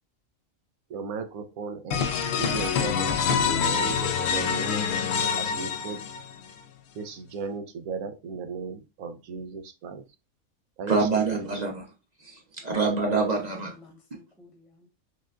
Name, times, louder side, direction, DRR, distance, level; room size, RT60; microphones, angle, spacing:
voice 1, 0.9-2.1 2.4-4.8 5.5-6.0 7.0-10.0 10.8-11.0 13.1-13.3, right 5 dB, 85° right, 7 dB, 1.1 m, -36 dB
sound 1, 1.9-6.5, left 6 dB, 65° left, 0.7 m, -26 dB
voice 2, 10.9-11.9 12.2-13.8, right 4 dB, 40° right, 2 dB, 0.7 m, -26 dB
voice 3, 12.6-14.9, left 2 dB, ahead, -1 dB, 1.0 m, -54 dB
6.1 x 2.2 x 2.4 m, 0.28 s
omnidirectional pair, 1.5 m